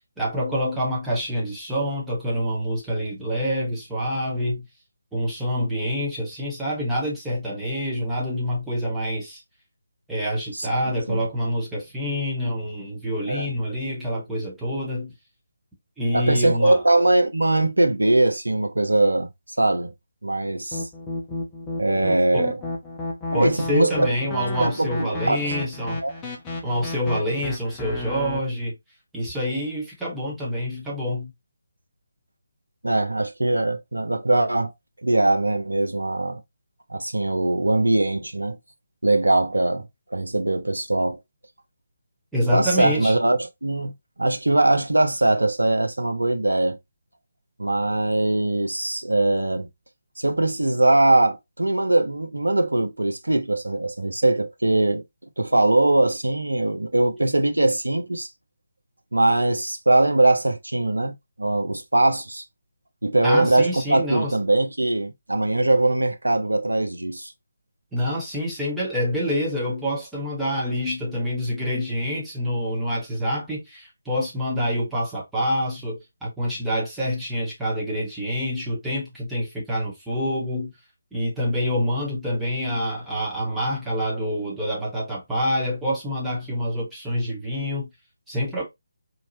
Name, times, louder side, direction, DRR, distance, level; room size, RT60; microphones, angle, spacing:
voice 1, 0.2-4.6 5.1-9.4 10.1-15.1 16.0-16.8 22.3-22.5 23.3-26.0 26.6-28.7 29.1-31.3 42.3-43.1 63.2-64.3 67.9-80.7 81.1-87.9 88.3-88.6, equal, 5° right, 1.4 m, -26 dB
voice 2, 16.1-19.3 19.6-19.9 20.2-20.8 21.8-22.6 23.3-24.1 24.6-25.5 26.0-26.2 32.8-34.7 35.0-36.4 36.9-38.6 39.0-41.2 42.5-43.9 44.2-46.8 47.6-49.7 50.2-55.0 55.4-58.3 59.1-62.4 63.0-67.3, right 2 dB, 75° right, 1.0 m, -21 dB
sound 1, 20.7-28.4, left 2 dB, 10° left, 0.9 m, -32 dB
4.4 x 3.1 x 2.7 m
figure-of-eight pair, 150°, 0 cm